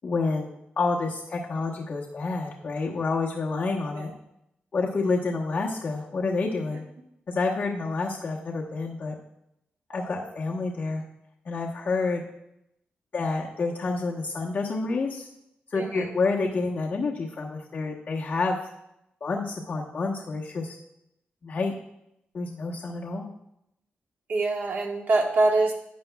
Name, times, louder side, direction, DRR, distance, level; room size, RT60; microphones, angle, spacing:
voice 1, 0.0-4.1 4.7-6.8 7.3-9.1 9.9-11.0 11.4-12.2 13.1-15.3 15.7-18.6 19.2-20.8 21.4-21.7 22.3-23.3, left 3 dB, 50° left, -3 dB, 1.1 m, -28 dB
voice 2, 9.9-10.5 15.7-16.2 24.3-25.7, right 2 dB, 60° right, 1 dB, 1.5 m, -26 dB
12.0 x 9.1 x 2.3 m, 0.81 s
wide cardioid pair, 135°, 4 cm